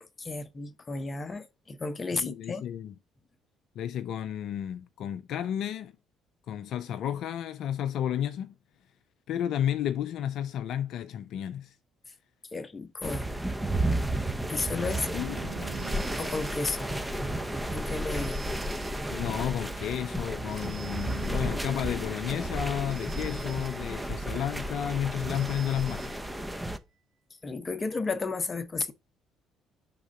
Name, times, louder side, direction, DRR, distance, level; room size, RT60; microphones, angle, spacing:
voice 1, 0.2-2.6 12.5-13.5 14.5-15.1 16.2-16.9 17.7-18.4 27.4-28.9, left 3 dB, 30° left, 0.8 m, -33 dB
voice 2, 2.1-2.9 3.8-5.9 6.5-8.5 9.3-11.8 14.8-15.5 19.1-26.2, left 10 dB, 65° left, 0.3 m, -32 dB
sound 1, 13.0-26.8, right 1 dB, 5° right, 0.7 m, -33 dB
sound 2, 15.1-19.8, right 9 dB, 65° right, 0.6 m, -48 dB
Telephone, 15.7-17.2 18.1-19.6 20.5-22.0 22.9-24.4 25.3-26.8, right 7 dB, 85° right, 1.7 m, -51 dB
4.9 x 3.6 x 5.5 m
hypercardioid pair, 50°, 0 cm